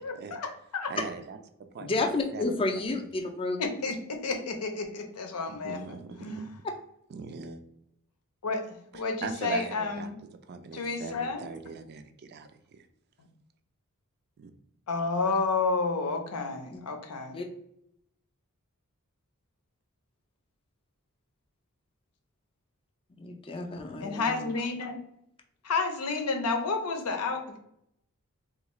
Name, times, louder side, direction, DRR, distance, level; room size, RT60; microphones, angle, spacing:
voice 1, 0.0-0.9 3.6-6.6 8.4-10.2 10.7-11.4 13.2-13.3 14.9-17.4 24.0-25.0 25.6-27.6, left 4 dB, 85° left, 5 dB, 0.6 m, -31 dB
voice 2, 0.9-1.4 1.7-2.6 5.6-6.6 7.1-7.6 8.9-10.1 10.5-12.9 14.4-14.5, right 4 dB, 45° right, 8 dB, 0.4 m, -40 dB
voice 3, 1.8-3.6 16.7-16.8 17.3-17.5 23.2-24.5, left 2 dB, 25° left, 3 dB, 0.4 m, -31 dB
3.5 x 2.4 x 3.0 m, 0.77 s
head